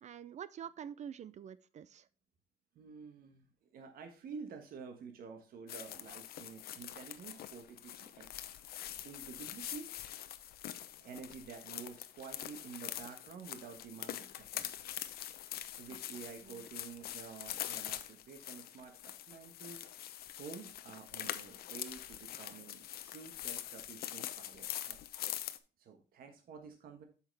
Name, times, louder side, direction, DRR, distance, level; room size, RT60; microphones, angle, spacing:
voice 1, 0.0-2.1 15.9-16.7, right 8 dB, 45° right, 17 dB, 0.5 m, -48 dB
voice 2, 2.7-8.3 9.0-9.9 11.0-14.9 15.8-19.9 20.4-25.0 25.8-27.0, right 6 dB, 60° right, 5 dB, 1.3 m, -50 dB
sound 1, 5.7-25.6, left 12 dB, 65° left, 0.7 m, -44 dB
8.2 x 5.8 x 3.3 m, 0.35 s
cardioid pair, 110°, 17 cm